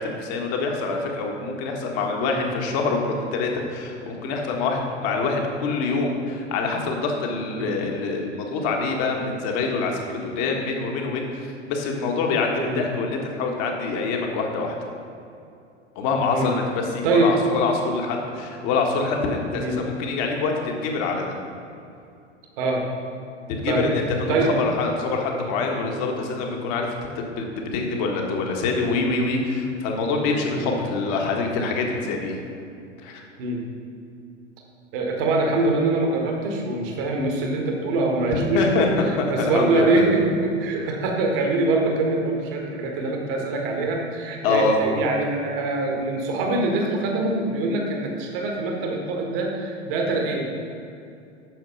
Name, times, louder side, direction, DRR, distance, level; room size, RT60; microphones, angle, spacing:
voice 1, 0.0-14.7 15.9-21.4 23.5-26.9 27.1-32.4 33.0-33.2 38.3-38.9 39.4-40.0 44.4-44.8, left 4 dB, 45° left, 1 dB, 1.6 m, -25 dB
voice 2, 34.9-39.0 39.3-50.5, right 2 dB, 50° right, 1 dB, 1.5 m, -24 dB
9.3 x 6.6 x 5.5 m, 2.6 s
figure-of-eight pair, 85°, 36 cm